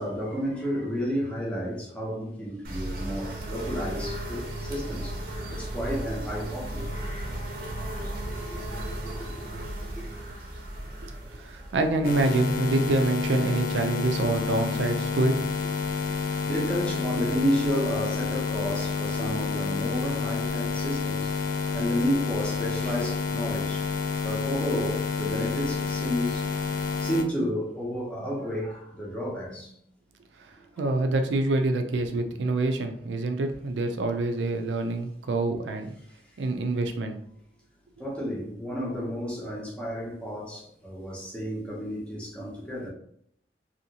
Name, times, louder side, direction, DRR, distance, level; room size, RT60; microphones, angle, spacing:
voice 1, 0.0-5.1 5.5-6.9 8.7-8.8 9.0-9.4 11.6-11.7 16.4-23.9 24.2-26.5 27.0-29.7 38.0-42.9, equal, 5° left, -5 dB, 0.7 m, -31 dB
sound 1, 2.6-13.3, right 1 dB, 50° right, 0.6 m, -35 dB
voice 2, 11.0-15.3 15.6-15.7 30.4-30.5 30.8-35.9 36.4-37.2, right 2 dB, 90° right, 6 dB, 0.4 m, -26 dB
sound 2, 12.0-27.2, left 5 dB, 45° left, 0.3 m, -29 dB
2.8 x 2.7 x 2.7 m, 0.67 s
head